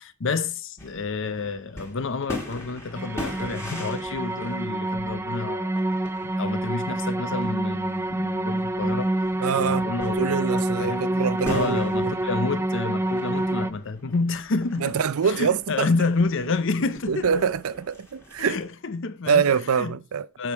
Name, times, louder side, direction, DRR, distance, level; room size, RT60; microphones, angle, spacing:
voice 1, 0.0-5.7 6.0-9.1 9.5-11.1 11.5-15.0 15.2-17.5 18.4-19.9 20.4-20.5, left 3 dB, 60° left, 0.7 m, -29 dB
sound 1, 0.8-18.7, left 1 dB, 10° left, 1.9 m, -42 dB
sound 2, 3.0-13.7, right 1 dB, 10° right, 0.4 m, -27 dB
voice 2, 9.4-12.1 14.8-15.9 17.1-18.6 19.3-20.3, right 6 dB, 80° right, 0.5 m, -25 dB
7.9 x 5.2 x 4.6 m
head